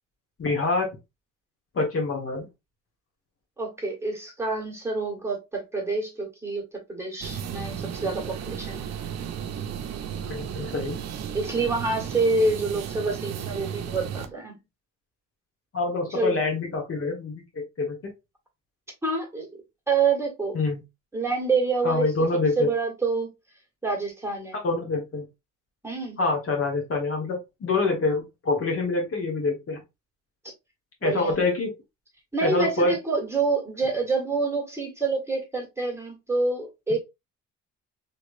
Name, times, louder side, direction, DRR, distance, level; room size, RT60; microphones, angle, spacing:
voice 1, 0.4-0.9 1.7-2.5 10.3-11.0 15.7-18.1 20.5-20.8 21.8-22.7 24.6-25.3 26.2-29.8 31.0-31.7 32.4-32.9 36.9-37.0, left 3 dB, 50° left, 1.3 m, -26 dB
voice 2, 3.6-6.6 6.9-8.9 11.3-14.6 16.1-16.4 19.0-19.5 19.9-20.6 21.1-22.1 22.6-23.3 23.8-24.6 25.8-26.2 31.0-31.4 32.3-37.0, right 3 dB, 10° right, 1.6 m, -27 dB
sound 1, 7.2-14.3, right 8 dB, 60° right, 0.6 m, -34 dB
3.3 x 3.0 x 2.6 m
cardioid pair, 90°, 30 cm